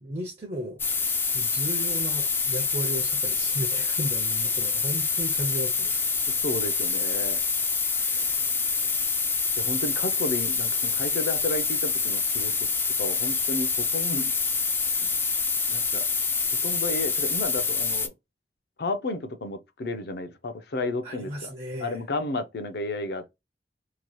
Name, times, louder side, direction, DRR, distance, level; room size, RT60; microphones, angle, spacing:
voice 1, 0.0-0.8 1.3-6.0 8.1-8.5 21.0-22.0, equal, 35° right, 0.6 m, -35 dB
sound 1, 0.8-18.1, left 4 dB, 15° left, 0.3 m, -26 dB
voice 2, 6.4-7.4 9.6-12.5 13.0-14.3 15.0-15.1 15.7-16.0 16.6-18.1 18.8-21.5 21.8-23.3, left 2 dB, 65° left, 0.6 m, -32 dB
2.8 x 2.3 x 2.9 m
head